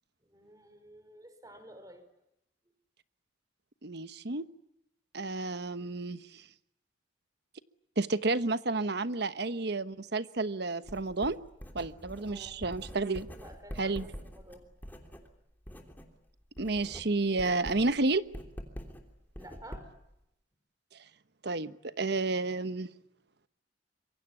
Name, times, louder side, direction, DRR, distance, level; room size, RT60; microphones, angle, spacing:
voice 1, 0.3-2.0 12.3-12.6 13.4-14.6 19.4-19.9, right 1 dB, 20° right, 9 dB, 5.1 m, -51 dB
voice 2, 3.8-4.5 5.1-6.4 8.0-11.4 11.7-13.3 13.8-14.1 16.6-18.2 21.4-22.9, right 3 dB, 60° right, 13 dB, 1.1 m, -31 dB
Writing, 10.9-16.1 16.4-20.1, equal, 10° left, 3.1 m, -45 dB
26.0 x 23.5 x 8.5 m, 0.81 s
head